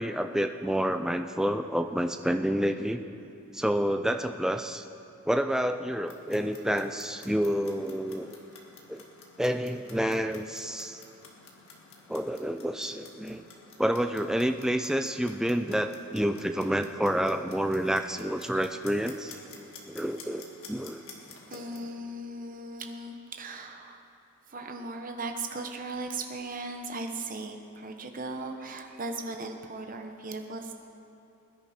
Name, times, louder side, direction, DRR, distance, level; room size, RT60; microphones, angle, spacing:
voice 1, 0.0-3.0 3.5-4.8 5.3-8.3 8.9-9.1 9.4-11.0 12.1-13.4 13.8-19.3 19.9-21.0, equal, 5° right, 7 dB, 0.5 m, -29 dB
Clock, 5.9-21.9, left 4 dB, 70° left, 1.8 m, -52 dB
voice 2, 21.5-24.0 24.5-30.7, right 2 dB, 40° right, 4 dB, 1.1 m, -37 dB
21.5 x 10.5 x 4.4 m, 2.7 s
head